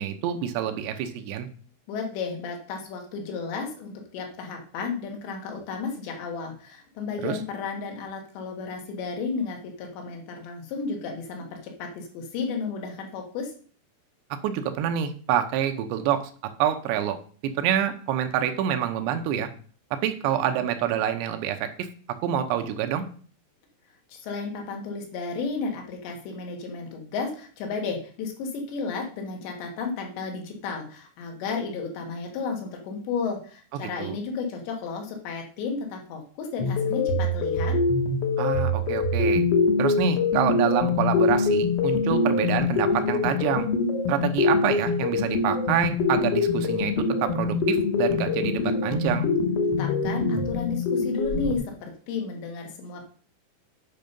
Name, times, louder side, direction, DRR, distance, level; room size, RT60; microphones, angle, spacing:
voice 1, 0.0-1.5 7.2-7.4 14.4-16.3 16.6-17.2 17.4-19.5 19.9-21.9 22.2-23.0 34.0-34.2 38.4-39.4 39.8-43.7 44.1-49.3, right 10 dB, 85° right, 7 dB, 3.1 m, -27 dB
voice 2, 1.9-13.5 24.1-37.8 49.7-53.0, left 4 dB, 90° left, 2 dB, 4.0 m, -33 dB
sound 1, 36.6-51.6, left 3 dB, 70° left, 1.4 m, -24 dB
9.1 x 5.5 x 5.3 m, 0.43 s
omnidirectional pair, 4.9 m